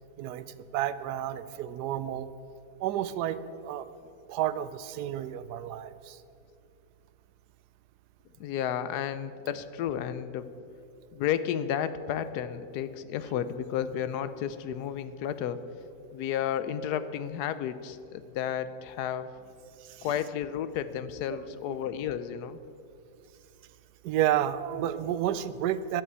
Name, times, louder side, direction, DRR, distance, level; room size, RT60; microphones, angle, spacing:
voice 1, 0.2-2.3 2.8-3.9 4.3-6.2 19.8-20.1 21.3-21.8 24.0-26.0, right 11 dB, 85° right, 15 dB, 1.2 m, -31 dB
voice 2, 8.4-10.5 11.1-15.6 16.1-19.3 20.0-22.6, left 9 dB, 80° left, 13 dB, 1.2 m, -32 dB
11.0 x 8.0 x 8.0 m, 2.5 s
omnidirectional pair, 1.7 m